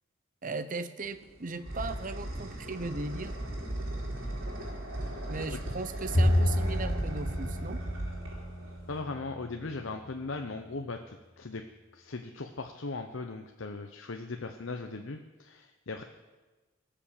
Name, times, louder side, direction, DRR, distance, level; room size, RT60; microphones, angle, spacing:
voice 1, 0.4-3.4 5.3-7.8, right 3 dB, 40° right, 12 dB, 0.7 m, -37 dB
sound 1, 1.0-9.0, right 1 dB, 80° right, 3.8 m, -37 dB
Bowed string instrument, 6.1-9.5, left 1 dB, 45° left, 3.8 m, -30 dB
voice 2, 8.9-11.6 11.9-16.0, left 3 dB, 70° left, 4 dB, 0.8 m, -38 dB
19.0 x 6.9 x 7.3 m, 1.2 s
head